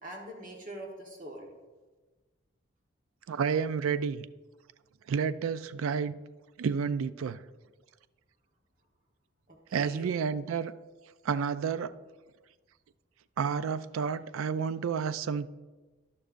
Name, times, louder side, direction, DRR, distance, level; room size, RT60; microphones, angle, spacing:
voice 1, 0.0-1.5 9.5-10.1, right 1 dB, 40° right, 0 dB, 1.1 m, -43 dB
voice 2, 3.3-4.3 5.1-6.2 6.6-7.4 9.7-10.7 11.2-11.9 13.4-15.5, right 6 dB, 85° right, 15 dB, 0.4 m, -30 dB
12.0 x 11.0 x 2.5 m, 1.3 s
head